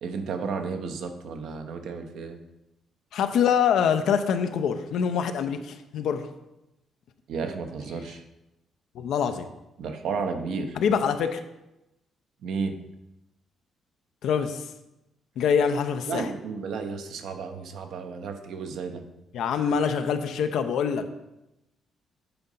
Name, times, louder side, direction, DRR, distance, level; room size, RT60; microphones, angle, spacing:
voice 1, 0.0-2.4 7.3-8.2 9.8-10.8 12.4-12.8 16.1-19.0, right 5 dB, 75° right, 6 dB, 0.8 m, -32 dB
voice 2, 3.1-6.3 8.9-9.5 10.8-11.4 14.2-14.7 15.4-16.3 19.3-21.1, left 7 dB, 75° left, 8 dB, 0.6 m, -25 dB
7.9 x 3.8 x 5.5 m, 0.92 s
cardioid pair, 90°, 0 cm